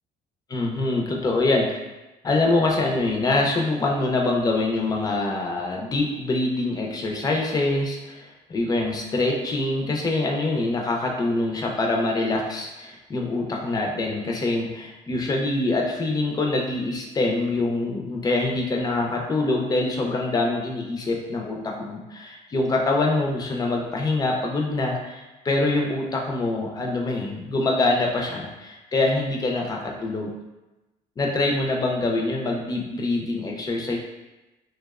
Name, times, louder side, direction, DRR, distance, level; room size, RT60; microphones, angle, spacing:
voice 1, 0.5-1.8 2.2-30.3 31.2-34.0, left 2 dB, 25° left, 0 dB, 0.4 m, -24 dB
2.7 x 2.0 x 2.3 m, 1.1 s
cardioid pair, 110°, 17 cm